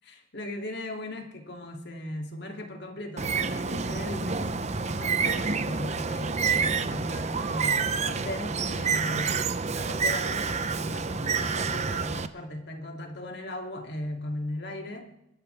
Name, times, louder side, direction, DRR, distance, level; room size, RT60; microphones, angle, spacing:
voice 1, 0.0-15.1, left 1 dB, 60° left, 3 dB, 2.8 m, -38 dB
Bird, 3.2-12.3, right 5 dB, 35° right, 0.7 m, -28 dB
26.5 x 13.5 x 3.5 m, 0.85 s
head